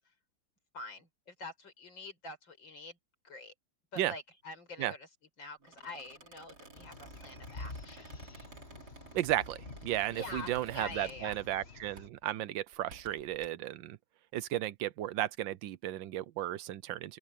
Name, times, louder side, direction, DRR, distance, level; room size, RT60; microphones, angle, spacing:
voice 1, 0.7-3.0 3.2-3.5 3.9-5.1 5.4-8.2 10.1-11.4, left 3 dB, 85° left, 6.3 m, -46 dB
Squeak, 5.6-11.7 12.0-12.2 12.7-13.5, right 3 dB, 60° right, 4.4 m, -53 dB
sound 1, 6.7-12.1, left 3 dB, 35° left, 2.1 m, -49 dB
voice 2, 9.1-14.0 14.3-17.2, right 13 dB, 85° right, 1.5 m, -34 dB
open air
omnidirectional pair, 2.0 m